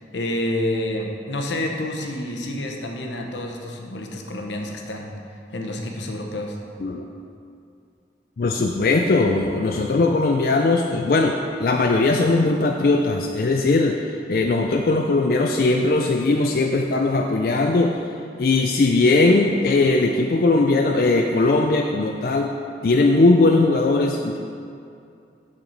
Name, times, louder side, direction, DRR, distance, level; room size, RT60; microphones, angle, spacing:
voice 1, 0.0-5.2 5.5-6.6, left 1 dB, 85° left, 2 dB, 0.9 m, -28 dB
voice 2, 8.4-14.0 14.3-17.9 18.4-22.5 22.8-24.4, left 3 dB, 55° left, 2 dB, 0.4 m, -19 dB
7.3 x 6.6 x 4.0 m, 2.4 s
head